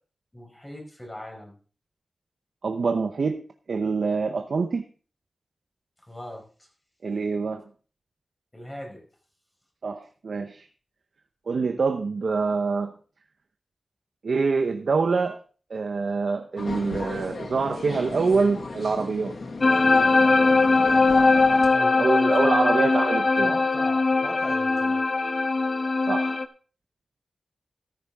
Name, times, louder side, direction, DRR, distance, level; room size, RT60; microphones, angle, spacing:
voice 1, 0.3-1.6 6.1-6.7 8.5-9.0 21.7-23.0 23.4-25.0, equal, 15° left, 1 dB, 5.0 m, -38 dB
voice 2, 2.6-4.9 7.0-7.7 9.8-10.7 11.5-12.9 14.2-15.4 15.7-19.4 22.0-23.6 26.1-26.4, right 4 dB, 80° right, 6 dB, 0.8 m, -25 dB
sound 1, 16.6-21.7, left 3 dB, 70° left, 1.5 m, -36 dB
sound 2, 19.6-26.5, left 3 dB, 45° left, 0.7 m, -20 dB
14.0 x 10.0 x 3.5 m, 0.39 s
wide cardioid pair, 110°, 0 cm